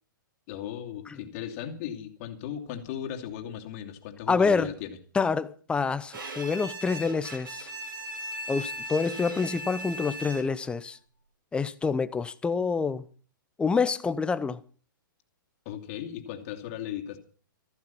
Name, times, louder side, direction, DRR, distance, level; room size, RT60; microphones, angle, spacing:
voice 1, 0.5-5.0 15.6-17.2, left 10 dB, 40° left, 2.7 m, -37 dB
voice 2, 4.3-4.7 5.1-7.7 8.5-11.0 11.5-13.0 13.6-14.6, left 5 dB, 10° left, 0.7 m, -27 dB
Bowed string instrument, 6.1-10.7, equal, 80° right, 4.3 m, -38 dB
15.0 x 14.5 x 5.8 m
hypercardioid pair, 135°, 11 cm